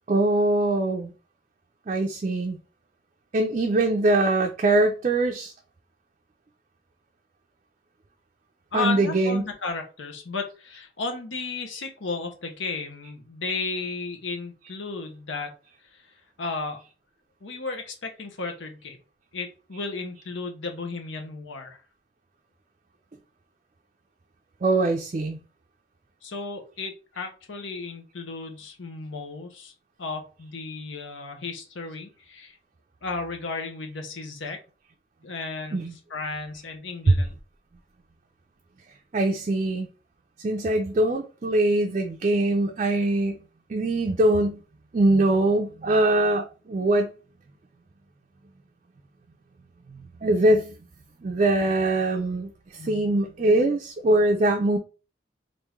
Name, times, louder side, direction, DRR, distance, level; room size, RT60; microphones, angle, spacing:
voice 1, 0.1-1.1 1.9-2.6 3.3-5.5 8.7-9.4 24.6-25.4 35.7-35.9 39.1-39.9 40.4-43.4 43.7-44.6 44.9-47.1 49.9-50.8 51.2-52.5 52.8-54.8, right 2 dB, 40° right, 0.4 m, -22 dB
voice 2, 8.7-15.5 15.9-16.0 16.4-16.8 17.4-19.0 19.3-21.8 26.2-29.7 30.0-32.6 33.0-34.6 35.2-37.3 52.7-53.0, left 4 dB, 90° left, 0.9 m, -34 dB
3.5 x 2.6 x 3.0 m
head